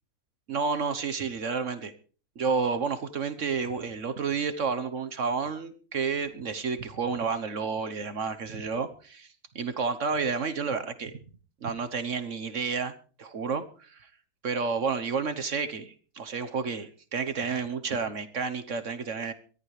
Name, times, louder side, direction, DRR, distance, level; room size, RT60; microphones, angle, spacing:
voice 1, 0.5-1.9 2.4-9.3 9.5-11.2 11.6-12.9 13.2-14.1 14.4-19.3, right 5 dB, 60° right, 11 dB, 1.4 m, -30 dB
23.5 x 14.0 x 3.3 m, 0.40 s
omnidirectional pair, 1.5 m